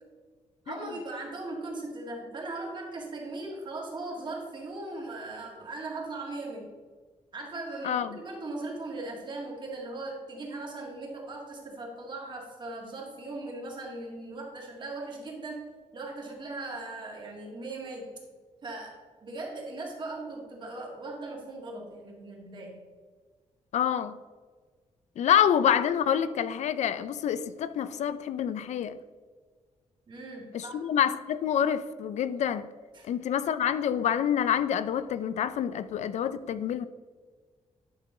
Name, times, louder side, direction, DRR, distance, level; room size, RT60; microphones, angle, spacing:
voice 1, 0.7-6.7 7.3-15.7 15.9-18.1 18.6-22.8 30.1-30.8 32.9-33.1, right 2 dB, 40° right, 1.9 m, -39 dB
voice 2, 7.8-8.2 23.7-24.2 25.2-29.0 30.5-32.7 33.1-36.9, left 9 dB, 75° left, 0.4 m, -27 dB
10.5 x 5.9 x 3.8 m
wide cardioid pair, 155°, 12 cm